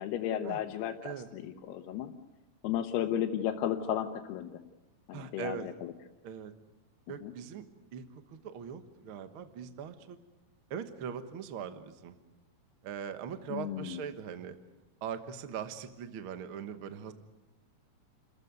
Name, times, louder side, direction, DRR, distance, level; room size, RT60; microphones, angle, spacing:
voice 1, 0.0-2.1 2.6-4.6 5.1-5.9 7.2-7.3 13.5-14.0, left 10 dB, 80° left, 4 dB, 2.9 m, -34 dB
voice 2, 5.1-5.7 6.2-6.5 7.1-7.6 7.9-10.2 10.7-12.1 12.8-14.5 15.0-17.1, right 8 dB, 80° right, 8 dB, 1.1 m, -41 dB
29.0 x 15.0 x 9.5 m, 1.1 s
omnidirectional pair, 4.6 m